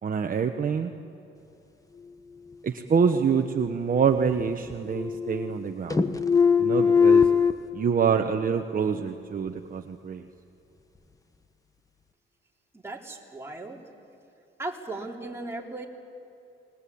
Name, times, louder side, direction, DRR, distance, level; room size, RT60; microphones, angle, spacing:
voice 1, 0.0-0.9 2.6-6.0 6.6-7.3 7.7-10.3, right 6 dB, 45° right, 5 dB, 1.2 m, -26 dB
sound 1, 3.4-4.4 4.7-5.6 5.9-7.5, left 6 dB, 15° left, 1.2 m, -22 dB
voice 2, 12.7-13.8 14.6-15.9, right 2 dB, 10° right, -2 dB, 3.8 m, -37 dB
28.5 x 20.5 x 8.7 m, 2.7 s
cardioid pair, 90°, 20 cm